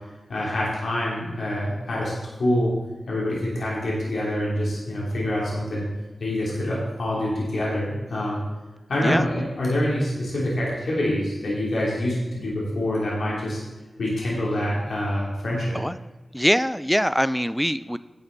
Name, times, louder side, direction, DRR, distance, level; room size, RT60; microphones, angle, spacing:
voice 1, 0.3-2.1 2.4-2.7 3.1-5.9 6.2-8.4 8.9-13.6 14.0-15.8, left 1 dB, 75° left, -5 dB, 3.1 m, -26 dB
voice 2, 16.3-18.0, equal, ahead, 15 dB, 0.4 m, -23 dB
11.0 x 7.8 x 4.0 m, 1.2 s
wide cardioid pair, 85°, 0 cm